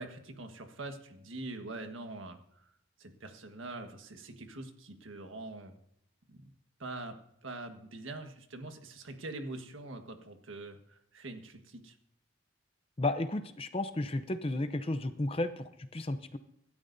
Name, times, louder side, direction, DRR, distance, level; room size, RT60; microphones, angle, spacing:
voice 1, 0.0-2.7 3.0-5.7 6.3-6.5 6.8-7.1 7.4-11.9, right 2 dB, 85° right, 6 dB, 1.5 m, -44 dB
voice 2, 13.0-16.4, left 2 dB, 30° left, 10 dB, 0.6 m, -33 dB
26.0 x 12.5 x 2.7 m, 0.73 s
head